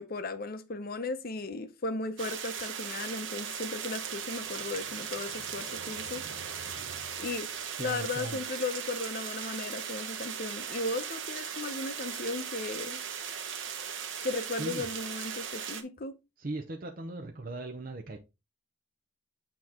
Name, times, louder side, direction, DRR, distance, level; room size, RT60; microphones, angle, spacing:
voice 1, 0.0-6.2 7.2-7.5 7.8-13.0 14.2-16.2, left 3 dB, 45° left, 0.7 m, -36 dB
sound 1, 2.2-15.8, right 8 dB, 65° right, 0.9 m, -38 dB
sound 2, 3.6-8.0, right 4 dB, 90° right, 0.6 m, -51 dB
voice 2, 7.8-8.4 14.6-14.9 16.4-18.2, right 2 dB, 45° right, 0.7 m, -38 dB
8.6 x 3.0 x 3.6 m
head